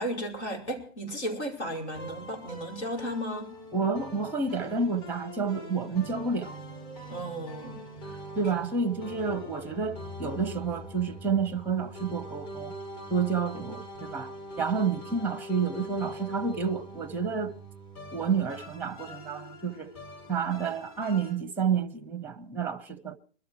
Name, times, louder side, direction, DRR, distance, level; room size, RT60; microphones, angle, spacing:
voice 1, 0.0-3.5 7.1-7.8, equal, 70° left, 5.4 m, -34 dB
sound 1, 1.7-21.3, equal, 45° left, 7.2 m, -43 dB
voice 2, 3.7-6.5 8.4-12.7 13.1-14.3 14.6-17.5 18.1-19.9 20.3-23.2, right 5 dB, 5° right, 0.9 m, -29 dB
21.5 x 13.0 x 4.7 m
figure-of-eight pair, 115°, 35 cm